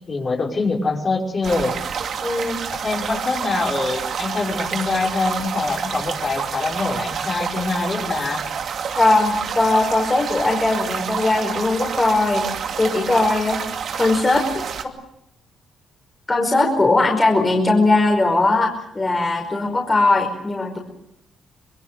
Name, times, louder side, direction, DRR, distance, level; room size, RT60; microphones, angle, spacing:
voice 1, 0.1-1.8 2.7-8.5, left 3 dB, 35° left, -1 dB, 5.8 m, -24 dB
sound 1, 1.4-14.8, right 7 dB, 60° right, 2.5 m, -28 dB
voice 2, 2.2-2.6 9.0-12.5 12.8-13.6 13.9-14.4 16.3-20.8, left 2 dB, 20° left, 1 dB, 5.1 m, -19 dB
26.0 x 21.5 x 6.7 m, 0.79 s
cardioid pair, 90°, 0 cm